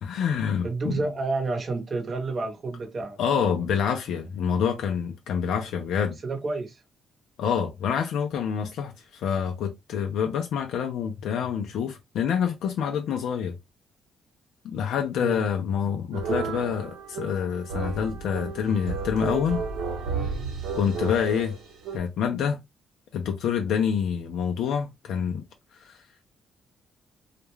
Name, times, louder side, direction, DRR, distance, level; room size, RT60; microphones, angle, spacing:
voice 1, 0.0-1.0 3.2-6.2 7.4-13.6 14.7-19.6 20.7-21.5 21.9-22.6 23.1-25.4 25.8-26.0, left 7 dB, 80° left, 0.4 m, -27 dB
voice 2, 0.6-3.2 6.2-6.8 15.2-15.5, right 3 dB, 40° right, 0.8 m, -30 dB
sound 1, 16.1-22.0, right 5 dB, 75° right, 0.8 m, -32 dB
2.3 x 2.1 x 3.0 m
cardioid pair, 90°, 0 cm